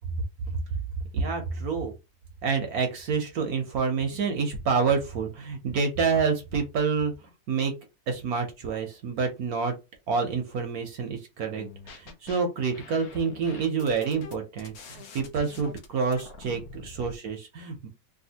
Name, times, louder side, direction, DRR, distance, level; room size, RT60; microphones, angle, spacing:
voice 1, 1.1-1.9 2.4-7.7 8.1-9.7 10.1-17.9, right 5 dB, 65° right, 4 dB, 1.1 m, -28 dB
sound 1, 11.6-12.4 12.7-17.2, left 4 dB, 65° left, 1.1 m, -45 dB
3.4 x 2.6 x 2.8 m, 0.25 s
omnidirectional pair, 1.9 m